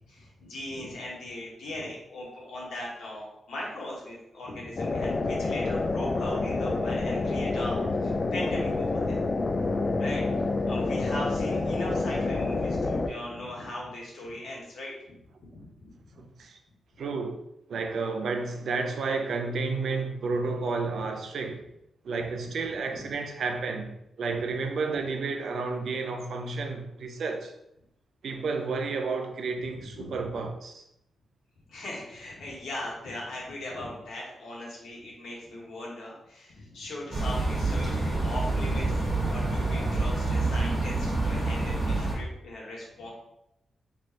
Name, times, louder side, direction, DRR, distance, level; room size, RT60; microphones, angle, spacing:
voice 1, 0.1-9.2 10.0-14.9 15.5-15.9 22.9-23.1 29.6-30.1 31.7-38.9 39.2-43.1, left 1 dB, 80° left, 1.3 m, -39 dB
sound 1, 4.8-13.1, left 3 dB, 45° left, 0.4 m, -28 dB
voice 2, 16.2-16.6 17.0-17.4 17.7-21.6 22.0-27.5 28.2-30.8, right 4 dB, 70° right, 0.5 m, -31 dB
sound 2, 37.1-42.2, right 2 dB, 20° right, 1.5 m, -27 dB
3.3 x 2.5 x 4.3 m
cardioid pair, 80°, 0 cm